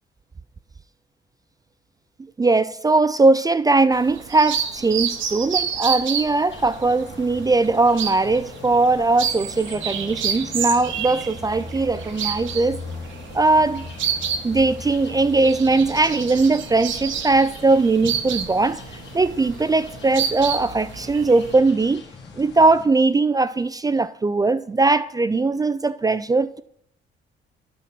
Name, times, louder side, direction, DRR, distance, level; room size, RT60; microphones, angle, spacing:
voice 1, 2.4-12.8 13.3-13.8 14.4-18.8 19.1-22.0 22.4-26.6, right 3 dB, 20° right, 0.3 m, -19 dB
sound 1, 3.9-21.5, right 8 dB, 75° right, 1.0 m, -30 dB
sound 2, 6.5-22.9, left 4 dB, 65° left, 1.8 m, -40 dB
9.1 x 5.7 x 5.9 m
cardioid pair, 90°, 20 cm